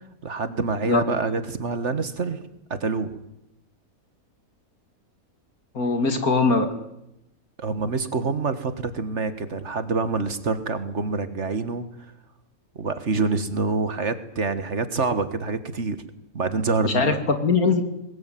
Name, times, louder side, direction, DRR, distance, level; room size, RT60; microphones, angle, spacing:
voice 1, 0.2-3.2 7.6-11.8 12.8-16.0 16.3-17.2, right 4 dB, 55° right, 11 dB, 1.9 m, -26 dB
voice 2, 5.7-6.7 16.8-17.8, left 4 dB, 85° left, 8 dB, 3.0 m, -21 dB
21.0 x 20.0 x 9.3 m, 0.85 s
omnidirectional pair, 1.5 m